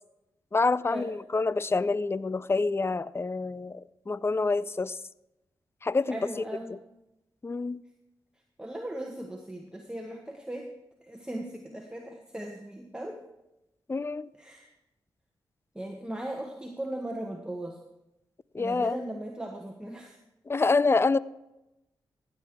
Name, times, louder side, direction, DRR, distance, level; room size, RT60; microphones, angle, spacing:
voice 1, 0.5-5.0 5.8-6.2 6.7-6.8 7.4-7.8 13.9-14.3 18.5-19.0 20.5-21.2, left 3 dB, 25° left, 19 dB, 0.4 m, -27 dB
voice 2, 6.1-6.7 8.6-10.7 11.0-13.2 14.4-14.7 15.7-17.8 18.6-20.2, right 1 dB, 10° right, 0 dB, 1.4 m, -38 dB
15.5 x 8.3 x 3.6 m, 0.91 s
supercardioid pair, 40°, 10 cm